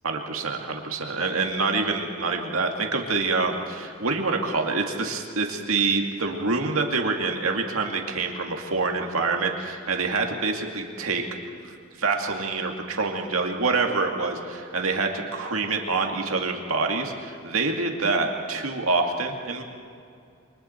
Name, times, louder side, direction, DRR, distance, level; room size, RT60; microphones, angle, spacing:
voice 1, 0.0-11.2 11.6-19.6, right 3 dB, 70° right, 2 dB, 2.3 m, -26 dB
28.5 x 24.0 x 4.5 m, 2.3 s
head